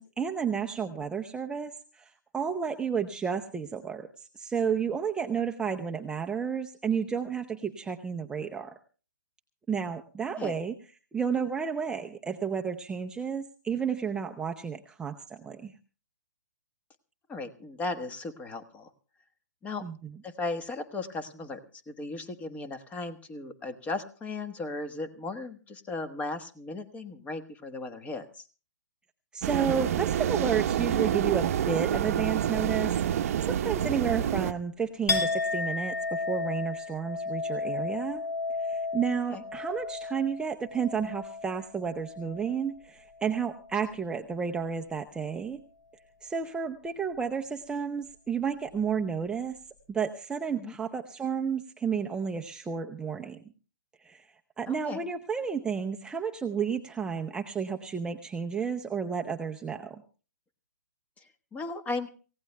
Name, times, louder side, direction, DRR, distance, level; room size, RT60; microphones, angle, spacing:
voice 1, 0.0-8.7 9.7-10.7 11.1-15.7 19.8-20.1 29.3-38.2 38.6-45.6 46.2-49.6 49.9-53.4 54.0-54.3 54.6-60.0, right 6 dB, 10° right, 4 dB, 0.6 m, -32 dB
voice 2, 17.3-18.9 19.6-19.8 20.2-21.6 21.9-28.5 39.3-39.4 50.6-50.7 54.7-55.0 61.2-61.3 61.5-62.1, left 3 dB, 15° left, 9 dB, 1.3 m, -36 dB
sound 1, 29.4-34.5, right 10 dB, 50° right, 0.8 m, -28 dB
Chink clink, 35.1-42.8 43.1-43.8, left 3 dB, 65° left, 6.4 m, -33 dB
28.0 x 16.5 x 2.2 m, 0.38 s
figure-of-eight pair, 130°, 10 cm